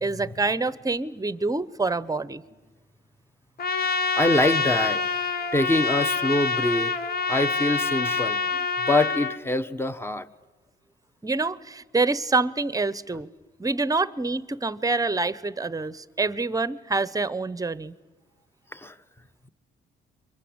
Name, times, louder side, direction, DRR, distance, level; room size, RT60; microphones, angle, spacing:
voice 1, 0.0-2.4 11.2-13.3 13.6-18.0, right 3 dB, 15° right, 17 dB, 0.9 m, -26 dB
Trumpet, 3.6-9.4, left 4 dB, 50° left, 1.5 m, -26 dB
voice 2, 4.2-5.0 5.5-10.3 18.7-18.9, left 1 dB, 10° left, 12 dB, 1.2 m, -25 dB
29.0 x 23.5 x 8.8 m, 1.2 s
cardioid pair, 90°, 20 cm